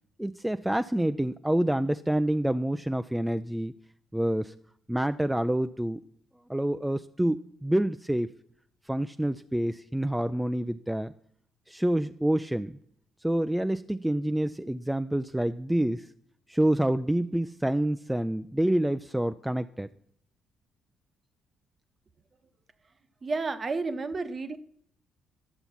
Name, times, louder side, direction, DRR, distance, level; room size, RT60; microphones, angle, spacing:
voice 1, 0.2-3.7 4.1-4.5 4.9-6.0 6.5-8.3 8.9-11.1 11.7-12.8 13.2-16.1 16.5-19.9, right 1 dB, 5° right, 9 dB, 0.4 m, -27 dB
voice 2, 23.2-24.6, right 3 dB, 35° right, 11 dB, 0.9 m, -31 dB
12.0 x 6.9 x 5.7 m, 0.66 s
hypercardioid pair, 45°, 0 cm